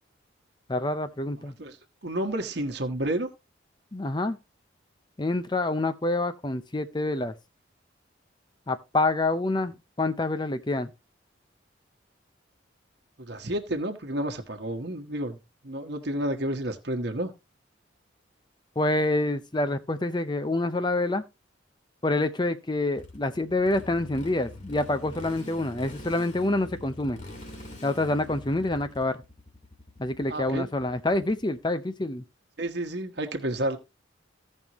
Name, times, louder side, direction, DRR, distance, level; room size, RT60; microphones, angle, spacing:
voice 1, 0.7-1.5 3.9-4.4 5.2-7.3 8.7-10.9 18.8-21.2 22.0-27.2 27.8-29.2 30.0-32.2, left 2 dB, 25° left, 0.6 m, -27 dB
voice 2, 1.4-1.8 2.0-3.3 13.2-15.4 15.6-17.3 30.3-30.7 32.6-33.8, right 1 dB, 55° right, 1.3 m, -30 dB
Motorcycle, 23.0-31.6, left 1 dB, 40° left, 2.0 m, -44 dB
15.5 x 5.4 x 3.0 m
head